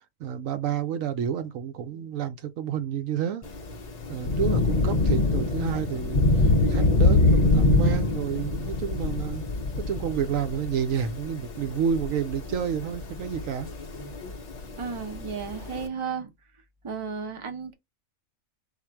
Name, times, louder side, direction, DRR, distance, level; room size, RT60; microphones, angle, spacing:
voice 1, 0.2-3.4 4.1-9.4 9.8-13.7, right 8 dB, 75° right, 0.9 m, -30 dB
Thunder / Rain, 3.4-15.8, left 2 dB, 50° left, 0.5 m, -25 dB
voice 2, 14.8-16.3 16.8-17.7, right 6 dB, 30° right, 0.7 m, -33 dB
3.6 x 2.5 x 4.5 m
omnidirectional pair, 1.4 m